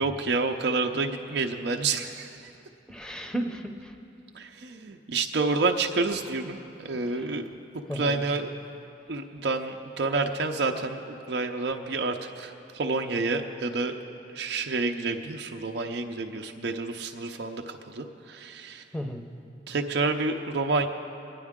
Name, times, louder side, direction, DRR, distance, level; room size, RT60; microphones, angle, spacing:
voice 1, 0.0-2.3 4.3-7.5 7.9-8.5 9.1-11.0 11.3-13.9 14.3-18.8 19.7-20.9, right 3 dB, 60° right, 3 dB, 0.6 m, -29 dB
voice 2, 2.9-3.9 7.1-7.4 7.9-8.2 18.9-19.3, equal, 5° left, 4 dB, 0.7 m, -34 dB
24.0 x 9.9 x 3.6 m, 2.8 s
head